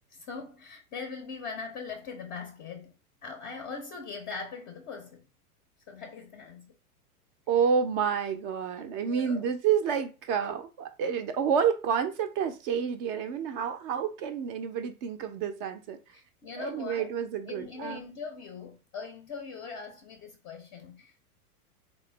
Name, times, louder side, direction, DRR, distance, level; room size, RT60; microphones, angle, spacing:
voice 1, 0.1-2.9 3.2-5.3 5.9-6.7 9.0-9.4 16.4-17.1 17.5-21.2, left 5 dB, 20° left, 0.4 m, -41 dB
voice 2, 7.5-16.0 16.6-18.0, right 7 dB, 40° right, 0.4 m, -29 dB
3.6 x 2.1 x 3.1 m
hypercardioid pair, 110°, 45 cm